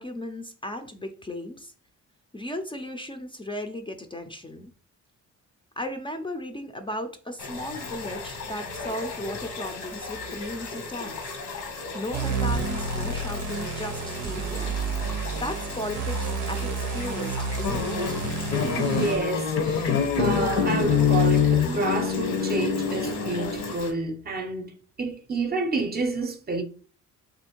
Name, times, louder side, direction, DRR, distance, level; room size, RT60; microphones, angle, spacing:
voice 1, 0.0-1.7 2.3-4.7 5.8-11.3 11.9-14.7 15.3-18.2, left 1 dB, 15° left, 0.5 m, -36 dB
sound 1, 7.4-23.9, left 4 dB, 85° left, 1.5 m, -37 dB
sound 2, 12.1-19.3, right 4 dB, 85° right, 0.6 m, -30 dB
sound 3, 17.6-23.7, left 6 dB, 55° left, 0.7 m, -25 dB
voice 2, 18.6-24.7 25.0-26.6, right 3 dB, 30° right, 0.7 m, -29 dB
3.0 x 2.6 x 4.4 m
cardioid pair, 90°, 30 cm